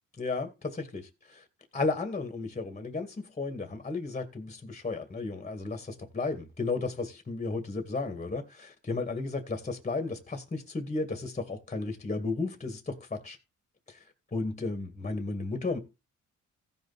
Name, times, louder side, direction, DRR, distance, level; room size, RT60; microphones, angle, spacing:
voice 1, 0.2-1.5 1.7-13.4 13.9-14.0 14.3-15.8, left 3 dB, 25° left, 2.1 m, -34 dB
15.5 x 5.2 x 4.1 m
cardioid pair, 90°, 30 cm